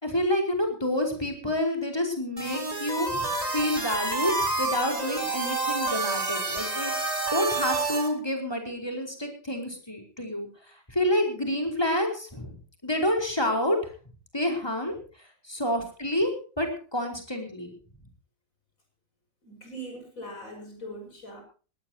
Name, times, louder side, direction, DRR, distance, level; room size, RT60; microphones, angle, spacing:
voice 1, 0.0-3.2 3.5-10.5 10.9-12.6 12.8-13.8 14.3-15.0 15.5-17.7, left 1 dB, 10° left, 3 dB, 4.8 m, -28 dB
sound 1, 2.4-8.1, right 3 dB, 20° right, 4.0 m, -29 dB
voice 2, 19.4-21.4, right 1 dB, 45° left, 4 dB, 7.4 m, -41 dB
21.5 x 17.5 x 2.9 m, 0.38 s
omnidirectional pair, 2.0 m